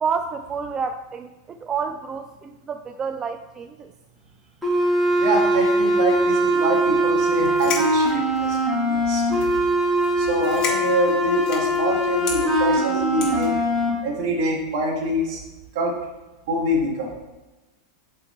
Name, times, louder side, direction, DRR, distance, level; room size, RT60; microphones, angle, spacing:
voice 1, 0.0-3.9, right 6 dB, 25° right, 8 dB, 0.3 m, -29 dB
sound 1, 4.6-13.9, right 1 dB, ahead, 2.2 m, -21 dB
voice 2, 5.2-8.6 8.9-9.5 10.2-13.5 14.0-15.4 15.8-16.0 16.5-17.1, right 1 dB, 65° right, 0 dB, 1.8 m, -25 dB
sound 2, 7.4-8.7 9.3-9.7 10.0-10.1 10.4-11.8 12.2-12.4 13.2-13.5, left 5 dB, 35° left, 2.1 m, -31 dB
6.3 x 4.4 x 4.4 m, 1.1 s
hypercardioid pair, 110°, 2 cm